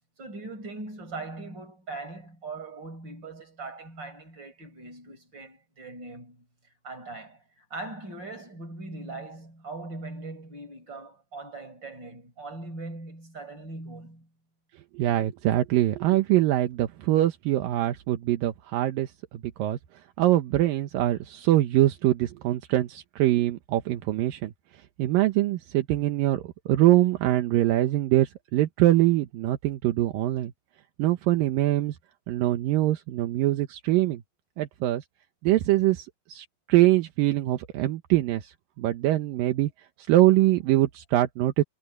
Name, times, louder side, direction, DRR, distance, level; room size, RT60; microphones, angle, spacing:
voice 1, 0.2-6.5 6.8-14.3, right 2 dB, 30° right, 6.5 m, -40 dB
voice 2, 14.9-19.1 19.6-19.8 20.2-24.5 25.0-30.5 31.0-32.0 32.3-34.2 34.6-35.0 35.4-39.7 40.1-41.6, right 15 dB, 75° right, 2.7 m, -23 dB
omnidirectional pair, 4.1 m